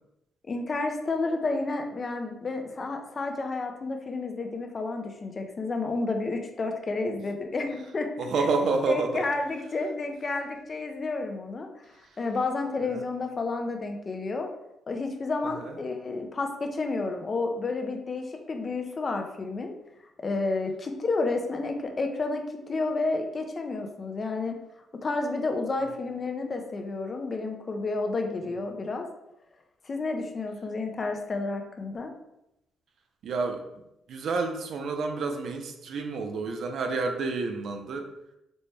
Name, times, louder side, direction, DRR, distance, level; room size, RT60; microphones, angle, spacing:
voice 1, 0.5-8.1 8.9-11.7 12.2-14.5 14.9-19.7 20.2-24.6 25.0-29.1 29.8-32.1, left 3 dB, 35° left, 4 dB, 0.5 m, -30 dB
voice 2, 8.2-9.2 12.8-13.0 15.4-15.8 28.4-28.6 33.2-33.6 34.1-38.1, right 4 dB, 65° right, 5 dB, 0.5 m, -29 dB
4.1 x 2.2 x 3.2 m, 0.86 s
cardioid pair, 90°, 0 cm